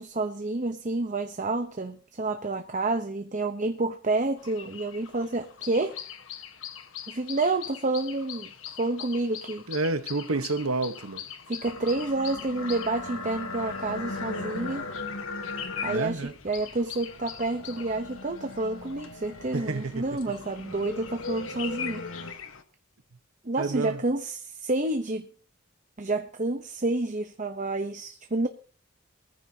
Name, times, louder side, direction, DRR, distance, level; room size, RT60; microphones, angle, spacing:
voice 1, 0.0-6.0 7.1-9.6 11.5-14.9 15.8-22.4 23.4-25.3 26.0-28.5, right 2 dB, 35° right, 0.9 m, -29 dB
sound 1, 4.4-22.6, left 7 dB, 65° left, 1.4 m, -42 dB
voice 2, 9.7-11.2 15.9-16.3 19.5-20.3 23.6-24.0, right 3 dB, 90° right, 1.2 m, -29 dB
sound 2, 11.6-22.3, left 3 dB, 85° left, 2.9 m, -39 dB
22.0 x 14.5 x 2.9 m
head